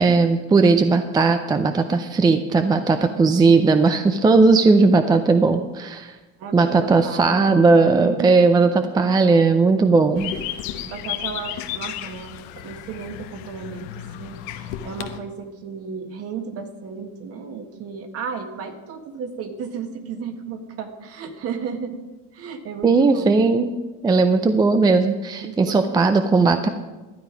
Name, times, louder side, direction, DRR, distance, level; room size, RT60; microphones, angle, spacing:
voice 1, 0.0-6.2 6.5-10.3 22.8-23.7 24.0-26.7, right 4 dB, 15° right, 8 dB, 0.4 m, -17 dB
voice 2, 6.4-7.5 8.0-8.7 10.8-22.0 22.3-23.4 25.4-26.2, right 6 dB, 45° right, 7 dB, 1.5 m, -34 dB
sound 1, 10.2-15.2, left 12 dB, 70° left, 1.0 m, -33 dB
12.5 x 9.1 x 5.0 m, 1.2 s
supercardioid pair, 130°, 33 cm